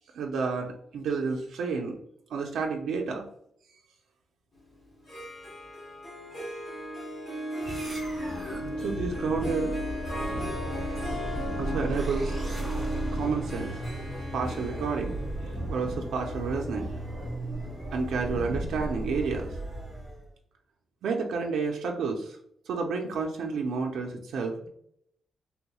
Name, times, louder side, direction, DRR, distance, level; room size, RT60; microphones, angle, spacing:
voice 1, 0.1-2.0 2.3-3.3 8.0-8.2 8.8-9.7 11.6-12.4 13.1-13.7 14.3-17.0 17.9-19.6 21.0-22.4 22.7-24.7, right 4 dB, 80° right, 1 dB, 0.4 m, -30 dB
Harp, 4.9-17.8, left 1 dB, 20° left, 0.8 m, -37 dB
sound 1, 7.6-20.3, right 1 dB, 20° right, 1.4 m, -35 dB
3.4 x 3.0 x 2.2 m, 0.69 s
wide cardioid pair, 175°, 0 cm